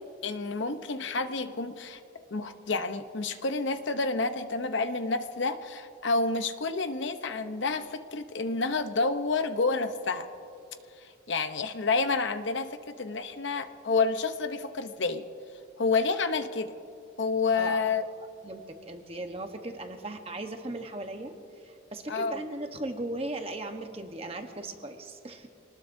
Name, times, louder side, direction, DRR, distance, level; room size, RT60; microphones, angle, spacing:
voice 1, 0.2-2.0 2.3-10.3 11.0-15.2 15.8-16.7 17.2-18.0 22.1-22.4, left 3 dB, 70° left, 9 dB, 0.8 m, -29 dB
voice 2, 18.4-25.5, right 2 dB, 30° right, 5 dB, 1.0 m, -37 dB
26.5 x 19.5 x 2.7 m, 2.7 s
head